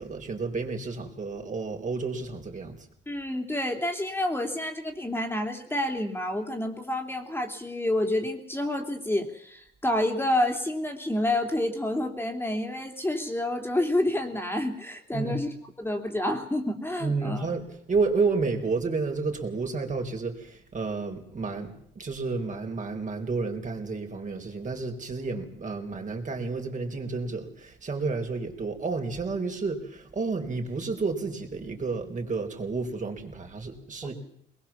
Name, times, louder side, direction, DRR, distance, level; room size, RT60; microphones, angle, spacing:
voice 1, 0.0-2.9 15.1-15.4 17.0-34.1, right 4 dB, 40° right, 4 dB, 4.4 m, -31 dB
voice 2, 3.1-15.5 15.8-17.5 34.0-34.1, left 1 dB, 10° left, 4 dB, 3.0 m, -29 dB
22.0 x 21.0 x 7.3 m, 0.69 s
cardioid pair, 90°, 20 cm